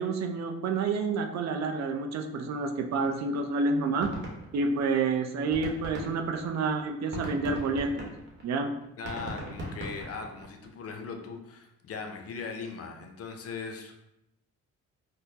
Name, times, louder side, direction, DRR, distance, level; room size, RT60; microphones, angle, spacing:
voice 1, 0.0-4.1 4.5-8.1 8.4-8.7 9.2-9.3, right 4 dB, 60° right, 4 dB, 0.5 m, -29 dB
sound 1, 3.0-3.1 3.3-3.5 3.8-5.1 5.4-10.6, right 1 dB, 35° right, 1.0 m, -39 dB
voice 2, 9.0-13.9, left 5 dB, 50° left, 4 dB, 0.6 m, -39 dB
4.3 x 2.1 x 2.7 m, 0.86 s
cardioid pair, 90°, 30 cm